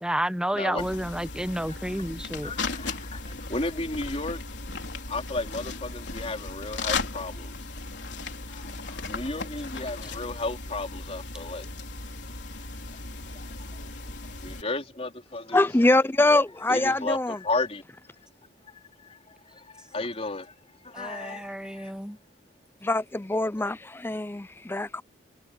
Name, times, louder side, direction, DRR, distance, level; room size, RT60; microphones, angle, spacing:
voice 1, 0.0-2.5 20.9-22.2, right 1 dB, 5° right, 0.9 m, -30 dB
voice 2, 0.5-0.9 1.7-2.0 2.4-11.7 12.3-12.4 12.9-14.1 14.4-15.7 16.7-17.8 18.6-22.0, left 2 dB, 35° left, 4.1 m, -35 dB
sound 1, 0.8-14.6, left 3 dB, 75° left, 4.1 m, -36 dB
voice 3, 15.5-17.4 22.8-25.0, left 2 dB, 10° left, 0.5 m, -24 dB
head